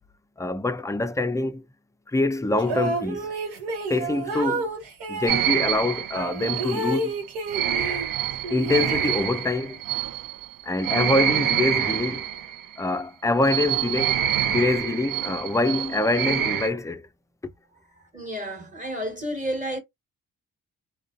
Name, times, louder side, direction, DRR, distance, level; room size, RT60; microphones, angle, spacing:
voice 1, 0.4-1.6 2.1-3.3 3.9-4.7 5.1-7.1 8.5-9.8 10.6-12.2 12.8-17.1, left 2 dB, 10° left, 0.3 m, -25 dB
sound 1, 2.6-5.5 6.1-8.1 8.4-9.5, right 2 dB, 85° right, 1.0 m, -30 dB
sound 2, 5.3-12.8 13.4-16.7, right 10 dB, 60° right, 0.6 m, -26 dB
voice 2, 17.9-19.8, equal, 20° right, 1.3 m, -31 dB
2.4 x 2.2 x 2.4 m
supercardioid pair, 60°, 39 cm